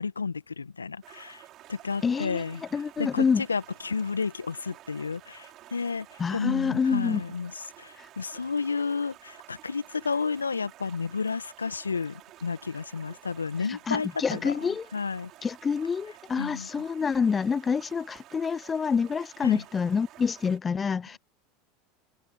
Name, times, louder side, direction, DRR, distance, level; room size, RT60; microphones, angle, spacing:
voice 1, 0.0-1.4 1.7-2.6 3.0-15.3 16.4-16.7 19.4-19.6, left 5 dB, 85° left, 1.7 m, -32 dB
Stream, 1.0-20.6, right 14 dB, 45° right, 6.7 m, -51 dB
voice 2, 2.0-2.4 2.7-3.4 6.2-7.2 8.0-8.1 13.7-14.9 15.4-21.2, left 6 dB, 25° left, 0.4 m, -27 dB
open air
figure-of-eight pair, 80°, 0 cm